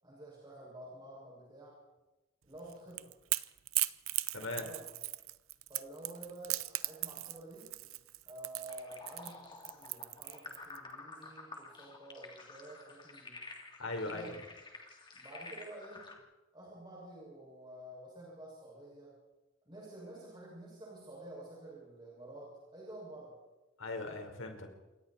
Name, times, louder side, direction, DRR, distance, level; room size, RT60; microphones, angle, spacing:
voice 1, 0.0-1.8 2.4-3.1 4.4-4.9 5.7-7.7 8.2-13.4 14.0-14.3 15.1-16.1 16.5-19.1 19.6-23.4 24.1-24.3, right 1 dB, 20° right, -5 dB, 6.6 m, -50 dB
Crackle / Crack, 2.6-10.8, right 17 dB, 85° right, 0.7 m, -37 dB
voice 2, 4.3-4.7 13.8-14.4 23.8-24.7, left 2 dB, 80° left, 3 dB, 4.9 m, -39 dB
sound 1, 8.7-16.2, left 3 dB, 25° left, 3.2 m, -50 dB
28.0 x 24.5 x 4.5 m, 1.1 s
head